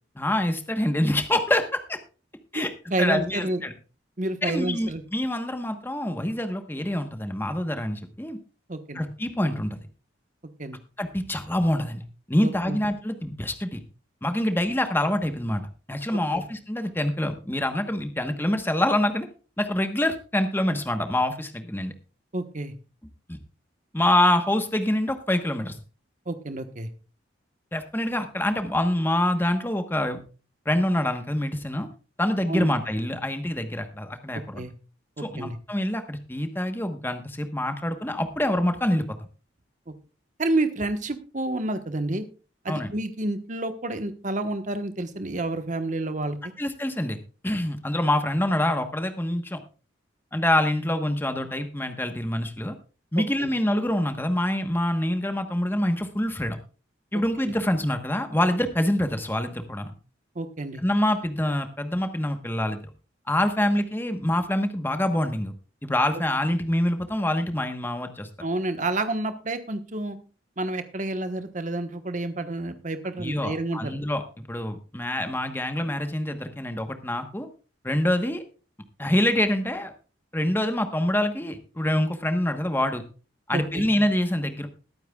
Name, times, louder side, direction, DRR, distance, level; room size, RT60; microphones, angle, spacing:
voice 1, 0.2-2.0 2.5-2.7 3.0-3.7 4.4-8.4 8.9-9.9 11.0-12.0 12.3-13.8 14.2-15.6 15.9-19.3 19.6-21.9 23.3-23.4 23.9-25.8 27.7-30.2 30.6-31.9 32.2-34.7 35.2-39.1 42.7-42.9 46.6-47.2 47.4-49.6 50.3-52.7 53.1-56.6 57.1-59.9 60.8-62.8 63.3-65.5 65.8-68.3 73.2-77.5 77.8-78.4 79.0-79.9 80.3-83.0 83.5-84.7, left 1 dB, 10° left, 7 dB, 1.2 m, -26 dB
voice 2, 2.5-3.6 4.2-5.0 8.7-9.0 10.6-10.8 12.4-12.8 16.3-16.4 22.3-22.7 26.3-26.9 32.5-32.7 34.6-34.7 35.2-35.6 40.4-42.2 42.6-46.4 53.2-53.5 57.4-57.5 60.3-60.8 68.4-70.2 70.6-74.0 83.5-83.9, right 2 dB, 40° right, 8 dB, 1.2 m, -29 dB
21.0 x 9.1 x 2.4 m, 0.35 s
head